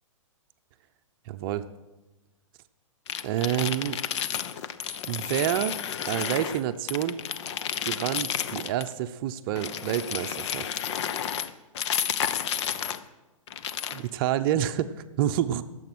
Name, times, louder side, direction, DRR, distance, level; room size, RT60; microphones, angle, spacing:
voice 1, 1.3-1.7 3.2-4.0 5.1-5.8 6.1-7.2 7.8-10.7 13.9-15.6, right 11 dB, 40° right, 10 dB, 0.7 m, -28 dB
sound 1, 3.1-6.6 6.9-8.9 9.6-13.0 13.5-14.1, left 9 dB, 55° left, 0.8 m, -31 dB
20.5 x 7.8 x 6.2 m, 1.1 s
hypercardioid pair, 125°, 17 cm